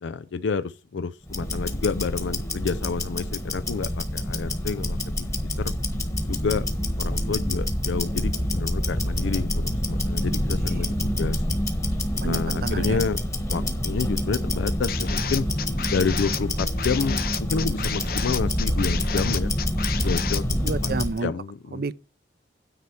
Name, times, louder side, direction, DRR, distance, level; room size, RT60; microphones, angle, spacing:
voice 1, 0.0-5.7 6.3-6.7 7.0-11.4 12.2-13.2 13.5-15.5 15.9-19.5 20.0-20.9 21.2-21.8, left 5 dB, 90° left, 0.4 m, -29 dB
Tick-tock, 1.3-21.2, left 1 dB, 15° left, 1.3 m, -27 dB
voice 2, 12.2-13.0 20.6-21.3 21.7-21.9, right 4 dB, 55° right, 0.5 m, -30 dB
sound 1, 14.9-20.4, left 8 dB, 55° left, 0.7 m, -32 dB
9.6 x 4.2 x 7.0 m
head